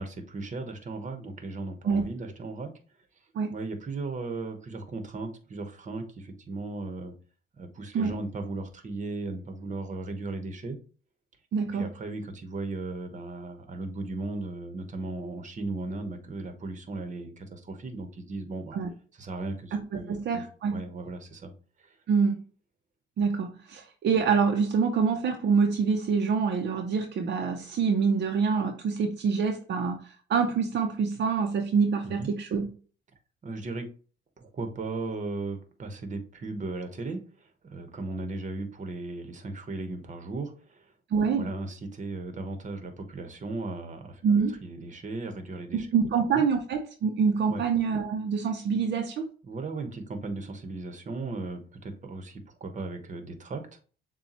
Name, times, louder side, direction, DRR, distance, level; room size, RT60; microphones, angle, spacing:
voice 1, 0.0-2.7 3.5-7.1 7.6-10.8 11.7-18.8 19.2-20.4 20.7-21.5 21.8-22.0 32.0-32.3 33.4-33.9 34.4-40.9 41.2-45.9 46.3-46.5 47.5-47.6 49.4-53.7, right 3 dB, 40° right, 7 dB, 1.1 m, -36 dB
voice 2, 11.5-11.9 18.7-18.9 19.7-20.8 22.1-22.4 23.2-32.7 41.1-41.5 44.2-44.6 45.7-49.3, right 5 dB, 60° right, 3 dB, 0.7 m, -26 dB
6.9 x 2.3 x 2.9 m, 0.38 s
cardioid pair, 90°, 20 cm